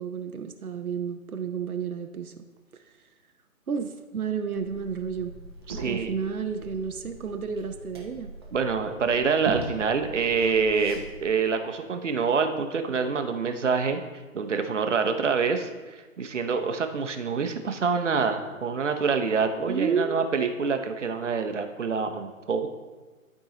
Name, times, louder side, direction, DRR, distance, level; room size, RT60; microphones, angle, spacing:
voice 1, 0.0-2.3 3.7-5.3 5.8-8.3 19.7-20.3, right 6 dB, 85° right, 6 dB, 0.7 m, -31 dB
Liquid, 4.5-11.3, right 2 dB, 20° right, 0.6 m, -40 dB
voice 2, 5.7-6.1 8.5-14.0 14.3-15.7 16.2-22.7, right 5 dB, 55° right, 7 dB, 0.8 m, -26 dB
12.0 x 4.7 x 2.9 m, 1.3 s
figure-of-eight pair, 145°, 42 cm